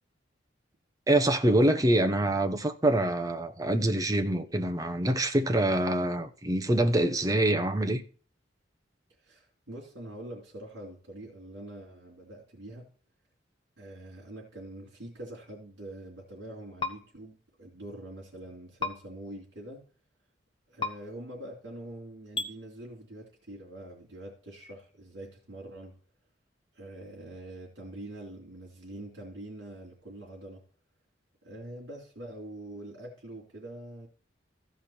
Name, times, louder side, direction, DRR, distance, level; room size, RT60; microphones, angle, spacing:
voice 1, 1.1-8.0, right 1 dB, 20° right, 0.9 m, -25 dB
voice 2, 9.2-12.9 13.8-19.9 20.7-26.0 26.7-30.6 31.4-34.1, right 1 dB, 70° right, 3.2 m, -44 dB
sound 1, 16.8-16.9 18.8-18.9 20.8-20.9 22.3-22.5, left 3 dB, 25° left, 1.1 m, -30 dB
14.5 x 5.2 x 4.4 m
head